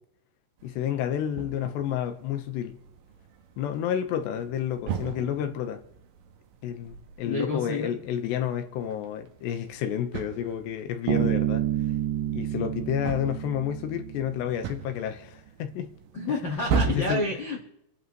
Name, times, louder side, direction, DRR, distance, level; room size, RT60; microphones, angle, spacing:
voice 1, 0.6-2.7 3.6-5.8 6.6-11.7 12.3-15.9 16.3-16.4 16.7-17.3, left 10 dB, 80° left, 3.1 m, -30 dB
sound 1, 0.6-17.0, right 6 dB, 70° right, 2.2 m, -38 dB
voice 2, 7.2-7.9 16.1-17.6, left 2 dB, 55° left, 1.2 m, -29 dB
Bass guitar, 11.1-14.6, right 12 dB, 90° right, 3.1 m, -29 dB
28.0 x 11.0 x 3.1 m
omnidirectional pair, 5.1 m